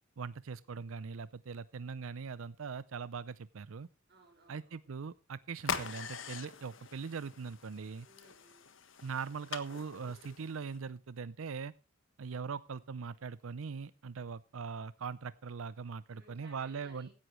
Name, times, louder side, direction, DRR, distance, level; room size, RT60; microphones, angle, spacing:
voice 1, 0.2-3.9 4.5-8.1 9.0-11.7 12.2-17.1, right 5 dB, 85° right, 17 dB, 0.5 m, -41 dB
voice 2, 4.1-4.8 8.0-8.7 16.1-17.1, right 2 dB, 55° right, -1 dB, 4.5 m, -60 dB
sound 1, 5.6-10.8, left 6 dB, 70° left, 1.4 m, -43 dB
16.0 x 11.0 x 3.2 m, 0.29 s
head